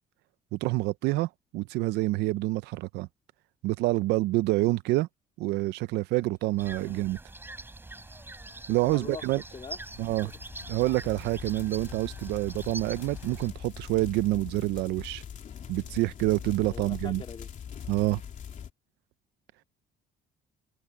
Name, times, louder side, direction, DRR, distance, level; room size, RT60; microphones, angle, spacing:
voice 1, 0.5-3.1 3.6-5.1 5.4-7.2 8.7-9.4 10.0-10.3 10.7-15.2 15.7-17.2 17.9-18.2, right 19 dB, 85° right, 0.6 m, -27 dB
Human voice, 4.8-4.9 6.2-7.4 7.8-8.9, left 2 dB, 15° left, 6.1 m, -65 dB
sound 1, 6.6-13.5, right 2 dB, 15° right, 5.3 m, -44 dB
voice 2, 8.7-9.8 10.2-10.4 11.8-12.0 16.6-17.5, left 5 dB, 30° left, 3.0 m, -44 dB
sound 2, 8.9-18.7, left 8 dB, 50° left, 3.0 m, -43 dB
open air
cardioid pair, 110°, 17 cm